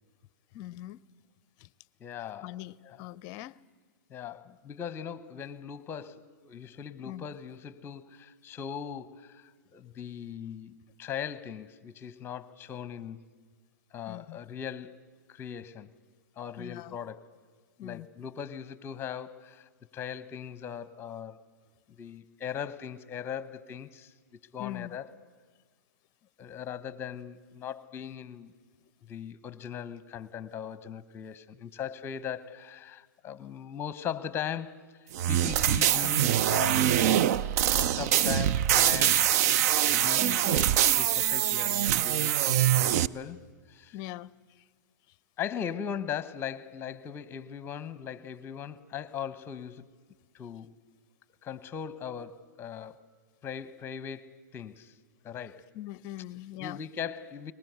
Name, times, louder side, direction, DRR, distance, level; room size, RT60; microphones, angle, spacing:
voice 1, 0.5-1.0 1.6-1.7 2.4-2.7 3.0-3.6 7.0-7.2 14.1-14.4 16.6-17.0 17.8-18.1 24.6-25.0 40.2-40.6 43.9-44.3 55.7-56.8, left 15 dB, 40° left, 0.6 m, -41 dB
voice 2, 2.0-2.6 2.8-3.0 4.1-13.3 13.9-15.0 15.3-15.9 16.4-17.3 17.8-21.4 22.0-24.1 24.5-25.1 26.4-28.5 29.0-34.8 35.3-37.3 37.7-39.2 39.9-42.7 42.9-43.4 43.7-44.0 45.4-49.9 50.3-50.7 51.4-53.0 53.4-54.9 55.2-55.6 56.6-57.5, left 8 dB, 20° left, 1.1 m, -39 dB
sound 1, 35.1-43.1, right 11 dB, 55° right, 0.6 m, -24 dB
22.5 x 20.0 x 8.1 m
hypercardioid pair, 120°, 10 cm